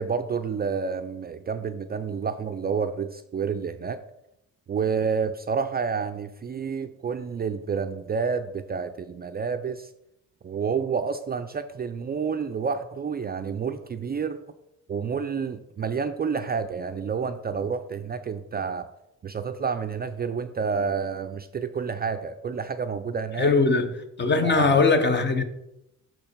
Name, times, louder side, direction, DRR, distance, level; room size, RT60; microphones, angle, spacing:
voice 1, 0.0-4.0 4.7-9.9 10.4-14.4 14.9-18.9 19.2-23.5 24.4-24.9, right 6 dB, 30° right, 0.4 m, -29 dB
voice 2, 23.4-23.9 24.2-25.4, left 4 dB, 35° left, 0.8 m, -20 dB
6.2 x 4.5 x 5.1 m
cardioid pair, 100°, 32 cm